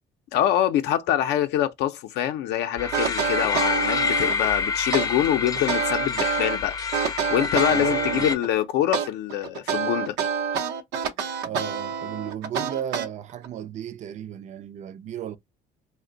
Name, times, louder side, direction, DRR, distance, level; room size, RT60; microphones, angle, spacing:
voice 1, 0.3-6.8 7.3-10.2, left 11 dB, 80° left, 0.4 m, -25 dB
sound 1, 2.8-8.4, left 5 dB, 20° left, 0.5 m, -27 dB
sound 2, 2.9-4.5 4.9-6.6 6.9-8.5 8.9-13.5, right 7 dB, 85° right, 0.6 m, -27 dB
voice 2, 7.7-8.3 11.4-15.4, right 10 dB, 45° right, 0.4 m, -34 dB
2.5 x 2.1 x 3.7 m
cardioid pair, 110°, 17 cm